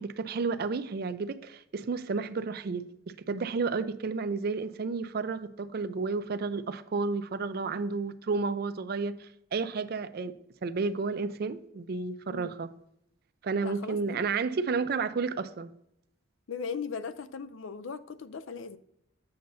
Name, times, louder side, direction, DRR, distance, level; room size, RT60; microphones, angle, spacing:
voice 1, 0.0-12.7 13.4-15.7, right 4 dB, 50° right, 0.4 m, -32 dB
voice 2, 13.6-14.3 16.5-18.8, left 5 dB, 75° left, 0.5 m, -38 dB
7.9 x 6.6 x 2.7 m
head